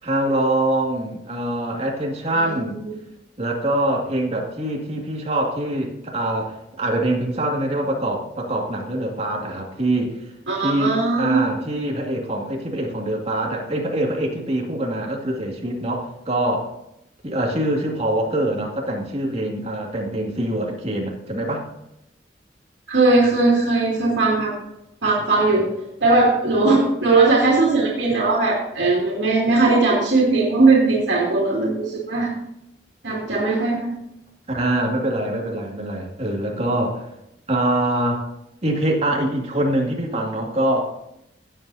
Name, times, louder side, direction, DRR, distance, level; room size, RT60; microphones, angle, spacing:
voice 1, 0.0-2.8 3.4-10.3 10.6-16.7 17.2-21.7 34.5-37.1 37.5-38.3 38.6-41.1, right 1 dB, 35° right, 0 dB, 2.2 m, -24 dB
voice 2, 10.5-11.4 22.9-24.5 25.0-25.6 26.0-32.3 33.0-34.0, right 3 dB, 85° right, -4 dB, 2.5 m, -18 dB
16.5 x 7.9 x 2.8 m, 0.85 s
head